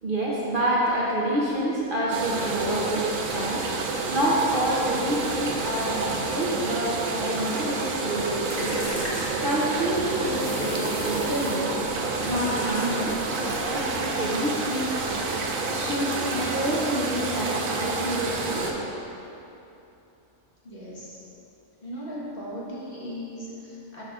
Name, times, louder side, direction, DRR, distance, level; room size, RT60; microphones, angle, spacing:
voice 1, 0.0-3.6 4.1-11.7 12.2-15.0 15.7-18.8, right 1 dB, 45° right, -6 dB, 0.8 m, -28 dB
sound 1, 2.1-18.7, right 3 dB, 75° right, 1.1 m, -29 dB
sound 2, 5.2-6.6 9.7-11.8 12.4-12.5 12.7-12.8 13.8-14.2, left 2 dB, 75° left, 1.4 m, -40 dB
sound 3, 8.5-9.9 10.4-11.7 12.2-13.3, equal, 10° left, 1.4 m, -38 dB
voice 2, 20.6-21.2 21.8-24.0, equal, 40° left, -7 dB, 1.5 m, -37 dB
12.5 x 5.5 x 2.4 m, 2.9 s
omnidirectional pair, 1.5 m